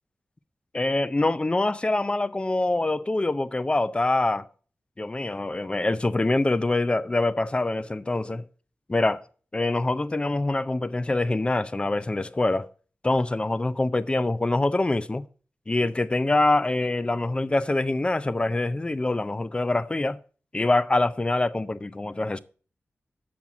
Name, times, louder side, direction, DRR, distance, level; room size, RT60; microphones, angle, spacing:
voice 1, 0.7-4.5 5.0-8.4 8.9-9.2 9.5-12.7 13.0-15.3 15.7-20.2 20.5-22.4, left 2 dB, 25° left, 0.4 m, -25 dB
7.3 x 6.0 x 7.0 m
wide cardioid pair, 110°, 4 cm